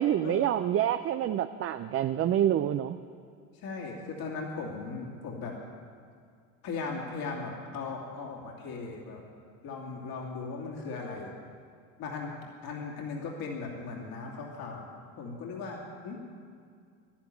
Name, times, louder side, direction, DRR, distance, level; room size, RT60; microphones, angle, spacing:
voice 1, 0.0-3.0, right 11 dB, 35° right, 10 dB, 0.5 m, -27 dB
voice 2, 3.5-5.6 6.6-9.2 9.6-11.3 12.0-12.3 12.6-14.9 15.2-16.2, left 4 dB, 60° left, -2 dB, 2.8 m, -38 dB
11.0 x 10.5 x 9.9 m, 2.3 s
supercardioid pair, 85°, 40 cm